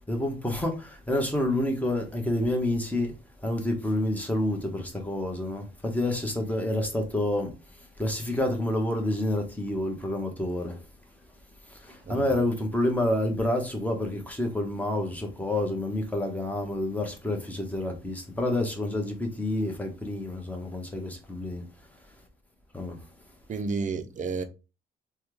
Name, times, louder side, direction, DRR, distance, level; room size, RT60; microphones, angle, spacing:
voice 1, 0.1-3.1 3.4-7.5 8.0-10.8 11.7-21.6 22.7-23.0, left 1 dB, 10° left, 1.1 m, -28 dB
voice 2, 12.0-12.4 23.5-24.4, right 4 dB, 40° right, 0.6 m, -31 dB
3.3 x 2.3 x 3.1 m
cardioid pair, 90°, 20 cm